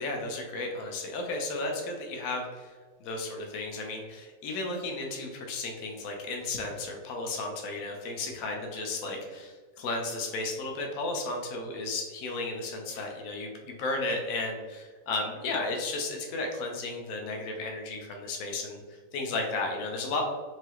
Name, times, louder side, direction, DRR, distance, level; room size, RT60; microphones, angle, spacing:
voice 1, 0.0-2.7 3.0-20.3, left 2 dB, 60° left, 1 dB, 1.1 m, -34 dB
4.7 x 2.8 x 3.0 m, 1.4 s
omnidirectional pair, 1.8 m